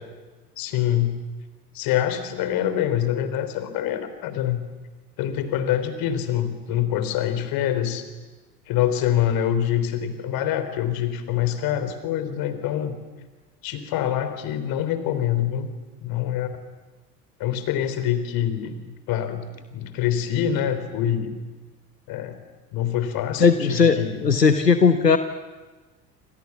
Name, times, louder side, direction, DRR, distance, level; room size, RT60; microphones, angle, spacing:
voice 1, 0.6-1.2 1.7-4.6 5.2-8.0 8.7-13.0 13.6-15.7 16.0-16.5 17.4-18.8 19.1-21.4 22.1-22.4 22.7-24.3, left 10 dB, 45° left, 11 dB, 3.7 m, -25 dB
voice 2, 23.4-25.2, left 5 dB, 85° left, 10 dB, 1.1 m, -17 dB
29.0 x 26.0 x 7.2 m, 1.3 s
figure-of-eight pair, 70°, 47 cm